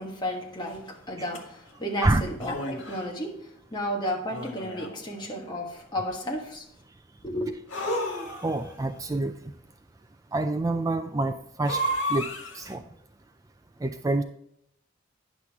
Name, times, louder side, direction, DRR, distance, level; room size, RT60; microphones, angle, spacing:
voice 1, 0.0-6.7 7.2-7.5, equal, 20° left, 1.3 m, -33 dB
sound 1, 1.3-1.4 2.4-3.1 4.3-5.1 7.7-8.7 11.6-12.7, equal, 75° left, 1.8 m, -32 dB
voice 2, 8.3-9.3 10.3-11.8 12.1-12.3 12.5-12.8 13.8-14.2, right 2 dB, 15° right, 0.3 m, -26 dB
9.8 x 6.1 x 3.5 m
head